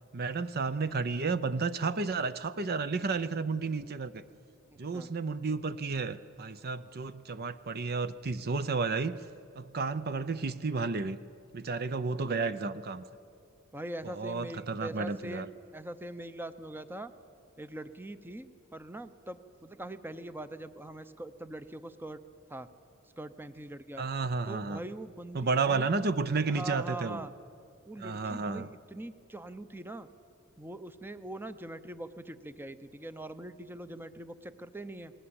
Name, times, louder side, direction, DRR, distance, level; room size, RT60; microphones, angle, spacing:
voice 1, 0.1-4.2 4.8-9.2 9.6-11.2 11.5-13.0 14.0-15.5 24.0-24.8 25.3-27.2 28.0-28.7, right 4 dB, 45° right, 13 dB, 0.7 m, -32 dB
voice 2, 12.1-12.5 13.7-17.1 17.6-22.2 22.5-22.7 23.2-24.0 24.5-25.9 26.5-27.3 27.9-30.1 30.6-35.1, right 1 dB, 10° right, 11 dB, 0.7 m, -42 dB
29.5 x 20.0 x 8.8 m, 2.6 s
head